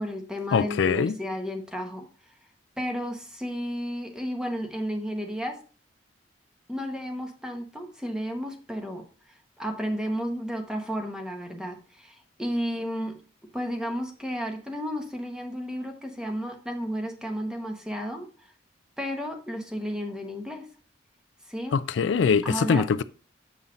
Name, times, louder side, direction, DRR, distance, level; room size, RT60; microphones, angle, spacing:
voice 1, 0.0-2.1 2.8-5.6 6.7-9.1 9.6-13.2 13.5-18.3 19.0-20.7 21.5-21.8 22.4-22.9, equal, 5° right, 1.1 m, -32 dB
voice 2, 0.5-1.1 21.7-23.0, left 6 dB, 85° left, 0.4 m, -23 dB
7.2 x 5.6 x 3.8 m
head